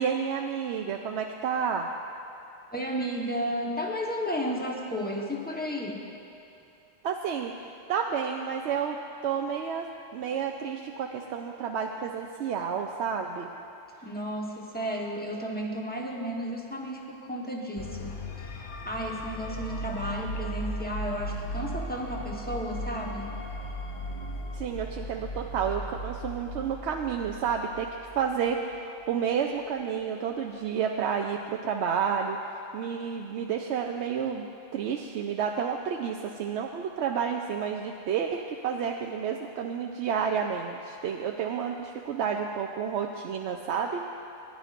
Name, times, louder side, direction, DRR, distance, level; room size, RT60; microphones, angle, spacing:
voice 1, 0.0-1.9 7.0-13.5 24.5-27.9 28.1-32.4 32.7-44.0, right 7 dB, 70° right, 2 dB, 0.8 m, -30 dB
voice 2, 2.7-6.0 14.0-23.3, equal, 10° left, -1 dB, 1.0 m, -33 dB
sound 1, 17.8-28.8, equal, 35° left, 0.5 m, -37 dB
20.0 x 10.5 x 2.5 m, 2.7 s
omnidirectional pair, 1.3 m